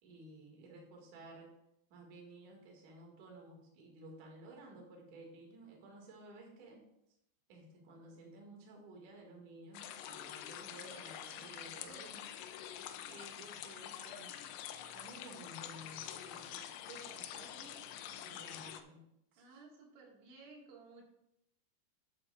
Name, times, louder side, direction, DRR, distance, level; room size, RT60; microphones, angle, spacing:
voice 1, 0.0-1.5 1.9-6.8 7.5-12.2 13.1-14.3 14.9-17.8 18.1-19.0 19.3-19.4, right 2 dB, 55° right, -1 dB, 3.2 m, -54 dB
sound 1, 9.7-18.8, left 10 dB, 80° left, 2.6 m, -47 dB
voice 2, 12.8-13.1 19.4-21.0, right 3 dB, 90° right, -1 dB, 4.2 m, -57 dB
12.5 x 8.9 x 2.4 m, 0.80 s
omnidirectional pair, 5.0 m